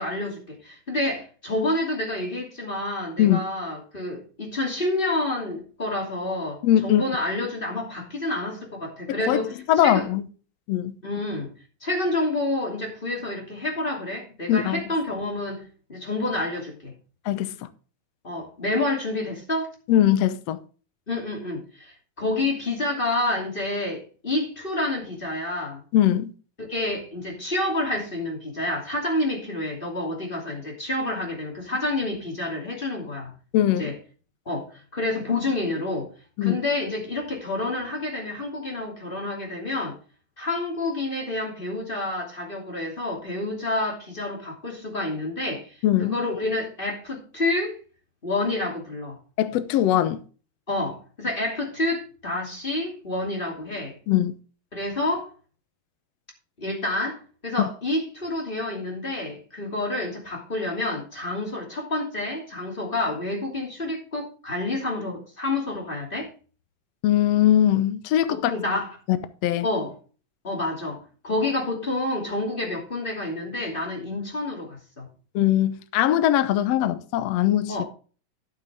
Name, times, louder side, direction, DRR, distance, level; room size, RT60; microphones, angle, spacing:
voice 1, 0.0-9.5 9.8-10.1 11.0-11.5 11.8-15.6 15.9-16.9 18.2-19.7 21.1-25.8 26.6-33.3 33.8-33.9 34.5-36.1 36.4-40.0 40.4-45.7 46.0-47.8 48.2-49.2 50.7-54.0 54.7-55.3 56.6-66.3 68.3-68.9 69.6-69.9 70.4-75.1 77.7-77.8, left 2 dB, 15° left, 2.4 m, -28 dB
voice 2, 6.6-7.0 9.3-9.4 9.7-10.2 10.7-11.0 14.5-14.8 17.2-17.6 19.9-20.6 25.9-26.3 33.5-33.9 36.4-36.6 45.8-46.2 49.4-50.2 54.1-54.3 57.6-57.7 67.0-68.5 69.4-69.7 75.3-77.8, left 12 dB, 75° left, 1.5 m, -21 dB
11.5 x 8.6 x 3.4 m
omnidirectional pair, 4.0 m